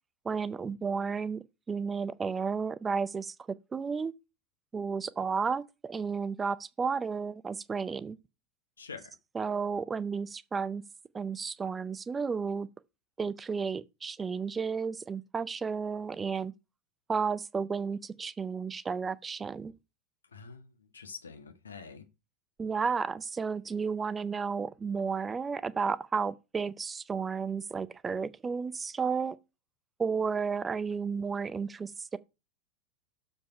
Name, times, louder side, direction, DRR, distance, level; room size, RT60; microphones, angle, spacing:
voice 1, 0.2-3.3 3.7-4.1 4.7-8.2 9.3-10.8 11.1-12.7 13.2-16.5 17.1-19.7 22.6-29.4 30.0-32.2, right 5 dB, 20° right, 0.6 m, -32 dB
voice 2, 8.8-9.1 20.3-22.1, left 5 dB, 80° left, 1.4 m, -46 dB
7.1 x 5.4 x 5.7 m
figure-of-eight pair, 85°, 0 cm